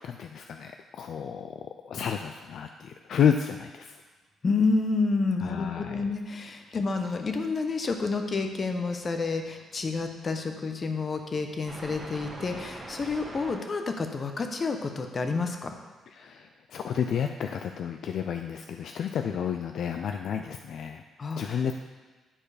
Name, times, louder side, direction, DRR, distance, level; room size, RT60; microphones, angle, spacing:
voice 1, 0.0-1.6 1.9-4.0 5.4-6.0 6.7-6.8 16.1-21.0 21.4-21.8, left 8 dB, 65° left, 5 dB, 0.4 m, -31 dB
voice 2, 4.4-15.8 21.2-21.6, left 4 dB, 40° left, 5 dB, 0.9 m, -29 dB
sound 1, 7.2-7.8 8.1-13.5, right 1 dB, 25° right, 2.1 m, -46 dB
10.0 x 4.6 x 5.0 m, 1.3 s
cardioid pair, 90°, 0 cm